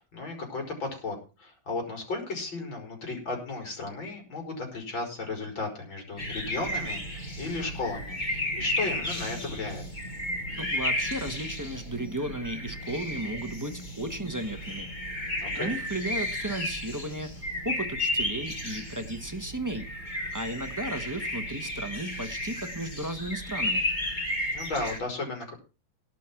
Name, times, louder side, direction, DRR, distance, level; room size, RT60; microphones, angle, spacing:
voice 1, 0.0-9.8 15.4-15.7 24.5-25.5, left 3 dB, 70° left, 2 dB, 5.4 m, -35 dB
sound 1, 6.2-25.0, left 1 dB, 25° left, 2.1 m, -33 dB
voice 2, 10.5-14.9 15.6-19.9 20.3-23.9, right 1 dB, 15° right, 7 dB, 0.9 m, -34 dB
18.0 x 6.1 x 5.9 m, 0.33 s
omnidirectional pair, 2.2 m